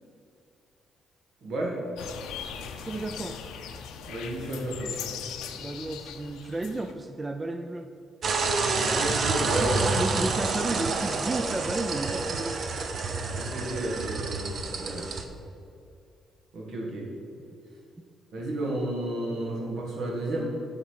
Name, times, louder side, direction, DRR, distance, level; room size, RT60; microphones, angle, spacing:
voice 1, 1.4-1.8 4.1-4.9 8.8-9.8 13.3-15.0 16.5-17.1 18.3-20.5, right 1 dB, 70° right, -2 dB, 1.9 m, -32 dB
sound 1, 2.0-6.9, left 7 dB, 85° left, 0.5 m, -39 dB
voice 2, 2.8-3.4 5.5-7.9 9.5-12.6, right 2 dB, 20° right, 6 dB, 0.4 m, -32 dB
sound 2, 8.2-15.2, right 4 dB, 50° right, 0.7 m, -28 dB
8.3 x 3.9 x 6.3 m, 2.5 s
cardioid pair, 90°, 0 cm